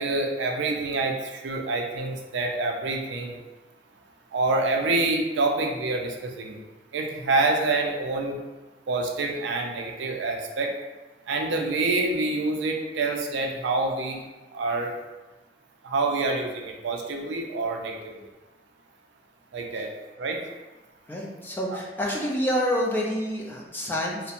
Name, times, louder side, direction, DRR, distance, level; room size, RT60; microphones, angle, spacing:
voice 1, 0.0-3.4 4.3-6.6 6.9-8.4 8.9-10.7 11.3-14.2 14.5-14.9 15.8-18.1 19.5-19.9 20.2-20.4, right 3 dB, 80° right, 2 dB, 0.4 m, -27 dB
voice 2, 21.1-24.3, equal, 10° left, -3 dB, 0.3 m, -28 dB
2.8 x 2.0 x 2.4 m, 1.2 s
head